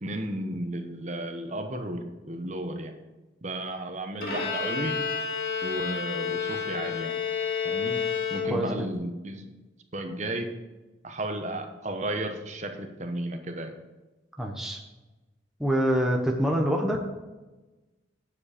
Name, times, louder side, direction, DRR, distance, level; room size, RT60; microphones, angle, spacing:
voice 1, 0.0-2.9 3.4-5.0 5.6-7.2 7.6-8.0 8.3-9.5 9.9-10.5 11.0-13.7, right 1 dB, 40° right, 5 dB, 1.1 m, -33 dB
Bowed string instrument, 4.2-8.9, left 6 dB, 50° left, 2.3 m, -30 dB
voice 2, 14.4-14.8 15.6-17.0, equal, ahead, 0 dB, 1.0 m, -25 dB
9.4 x 7.5 x 5.1 m, 1.1 s
head